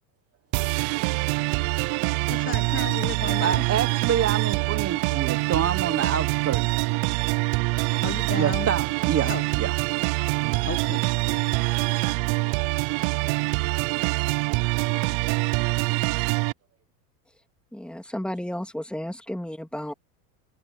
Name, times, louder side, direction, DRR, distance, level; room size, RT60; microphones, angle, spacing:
sound 1, 0.5-16.5, right 29 dB, 60° right, 0.8 m, -25 dB
voice 1, 1.8-3.7 8.0-8.7 9.2-9.5 10.6-11.6 12.3-13.2, left 8 dB, 25° left, 1.3 m, -36 dB
voice 2, 3.4-6.7 8.3-9.3 9.6-9.7, right 9 dB, 30° right, 1.3 m, -26 dB
voice 3, 17.7-19.9, left 1 dB, ahead, 2.9 m, -33 dB
hypercardioid pair, 100°, 49 cm